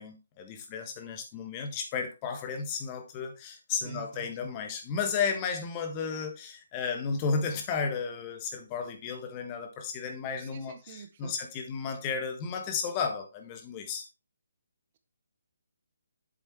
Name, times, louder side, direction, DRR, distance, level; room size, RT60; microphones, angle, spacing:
voice 1, 0.0-14.1, left 5 dB, 20° left, 1.5 m, -33 dB
voice 2, 3.8-4.5 10.4-11.4, right 9 dB, 35° right, 0.8 m, -47 dB
8.1 x 7.1 x 3.2 m
figure-of-eight pair, 140°, 0 cm